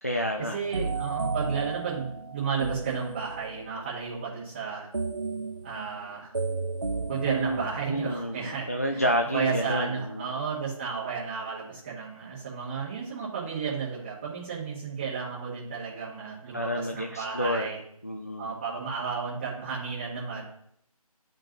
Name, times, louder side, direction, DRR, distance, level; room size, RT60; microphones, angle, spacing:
voice 1, 0.0-0.7 7.3-10.3 16.5-17.7 18.0-18.5, equal, 25° left, 4 dB, 0.4 m, -30 dB
voice 2, 0.5-4.9 5.6-6.3 7.1-17.8 18.4-20.4, right 6 dB, 15° right, -8 dB, 1.2 m, -33 dB
sound 1, 0.7-3.7 4.9-8.2, right 3 dB, 40° right, 0.4 m, -33 dB
11.0 x 5.2 x 2.9 m, 0.69 s
figure-of-eight pair, 165°, 19 cm